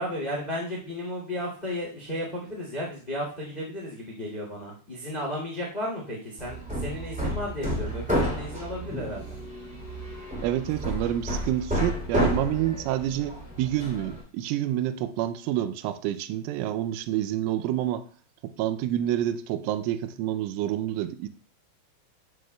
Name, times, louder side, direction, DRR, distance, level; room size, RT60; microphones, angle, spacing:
voice 1, 0.0-9.4, left 1 dB, 35° left, -2 dB, 0.8 m, -34 dB
Hammer, 6.4-14.2, equal, 5° right, 1.1 m, -31 dB
voice 2, 10.4-18.1 18.4-21.3, right 12 dB, 85° right, 11 dB, 3.1 m, -28 dB
14.0 x 6.2 x 2.3 m, 0.40 s
omnidirectional pair, 5.7 m